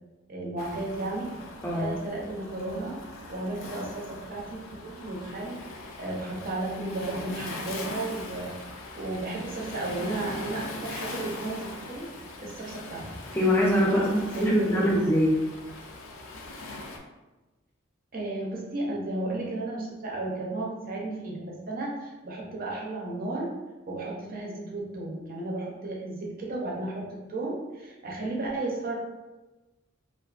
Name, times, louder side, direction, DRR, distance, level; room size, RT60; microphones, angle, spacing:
voice 1, 0.3-1.3 1.7-3.0 3.3-5.6 6.0-8.5 8.9-12.1 12.4-13.1 13.9-15.0 18.1-23.5 23.9-29.0, right 2 dB, 45° right, -3 dB, 0.6 m, -33 dB
Waves surf, 0.6-17.0, left 2 dB, 80° left, 0.4 m, -41 dB
voice 2, 13.3-14.1 14.4-15.4, equal, 10° left, -4 dB, 0.5 m, -23 dB
2.4 x 2.4 x 2.3 m, 1.1 s
head